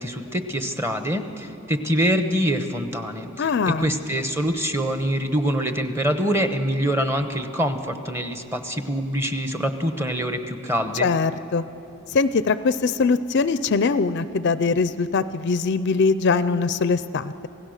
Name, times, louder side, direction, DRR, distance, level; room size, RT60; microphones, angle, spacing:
voice 1, 0.0-11.1, equal, 10° right, 7 dB, 1.0 m, -25 dB
voice 2, 3.4-3.9 11.0-11.6 12.1-17.5, left 4 dB, 50° left, 13 dB, 0.4 m, -22 dB
27.0 x 17.0 x 6.5 m, 2.9 s
head